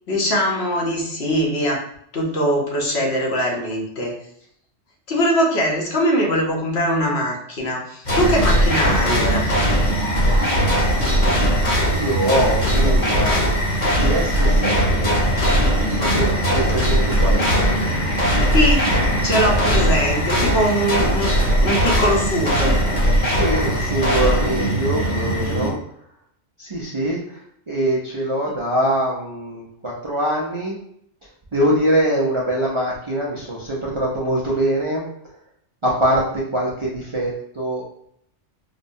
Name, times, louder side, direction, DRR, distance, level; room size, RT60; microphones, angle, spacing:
voice 1, 0.1-1.8 2.1-4.1 5.1-9.5 18.5-18.9 19.2-21.3 21.6-22.8, equal, 65° left, -1 dB, 1.1 m, -21 dB
sound 1, 8.0-25.7, equal, 40° left, 1.1 m, -19 dB
voice 2, 11.9-13.4 13.9-15.2 15.8-17.6 23.2-25.8 26.6-30.8 31.5-35.1 35.8-37.8, right 1 dB, 40° right, -5 dB, 0.5 m, -23 dB
5.1 x 2.1 x 2.6 m, 0.70 s
omnidirectional pair, 1.2 m